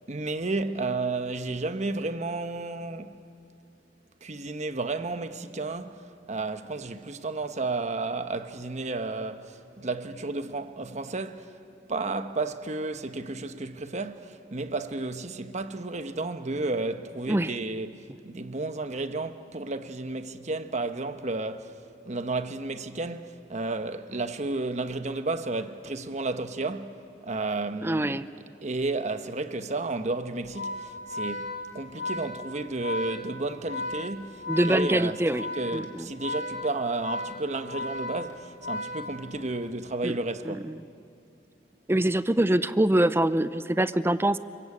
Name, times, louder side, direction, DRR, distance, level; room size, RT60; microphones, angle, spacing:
voice 1, 0.1-3.2 4.2-11.6 11.9-21.7 22.0-28.3 28.6-40.7, right 3 dB, 40° right, 1.1 m, -32 dB
voice 2, 27.8-28.2 34.5-35.4 35.7-36.1 40.0-40.2 40.4-40.8 41.9-44.4, right 1 dB, 15° right, 0.6 m, -24 dB
Organ, 30.4-39.6, left 2 dB, 75° left, 2.8 m, -35 dB
27.5 x 24.5 x 8.5 m
head